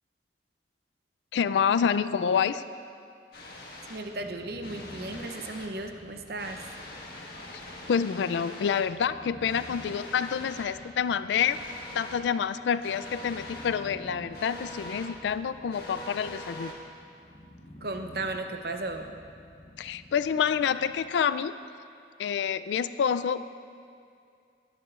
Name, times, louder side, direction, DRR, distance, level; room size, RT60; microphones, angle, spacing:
voice 1, 1.3-2.6 7.9-11.6 11.9-16.7 19.8-21.5 22.2-23.5, left 7 dB, 80° left, 14 dB, 0.3 m, -27 dB
sound 1, 3.3-4.0 4.6-5.7 6.4-8.8 9.4-10.6 11.3-12.2 12.8-13.7 14.3-15.1 15.7-16.7, left 1 dB, 60° left, 1.4 m, -43 dB
voice 2, 3.9-6.7 17.8-19.2, right 2 dB, 55° right, 6 dB, 0.7 m, -35 dB
sound 2, 4.0-21.2, left 1 dB, 40° left, 1.1 m, -50 dB
18.0 x 9.8 x 2.4 m, 2.4 s
head